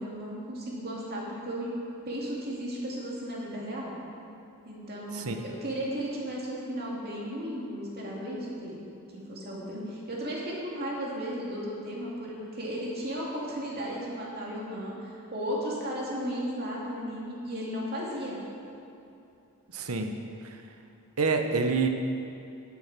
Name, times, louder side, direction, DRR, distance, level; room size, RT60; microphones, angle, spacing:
voice 1, 0.0-1.7 2.1-4.0 4.6-8.8 9.3-18.4, equal, 45° right, -4 dB, 2.6 m, -35 dB
voice 2, 19.7-20.2 20.4-20.6 21.2-21.9, right 4 dB, 80° right, 5 dB, 1.0 m, -27 dB
11.5 x 8.5 x 6.1 m, 2.7 s
head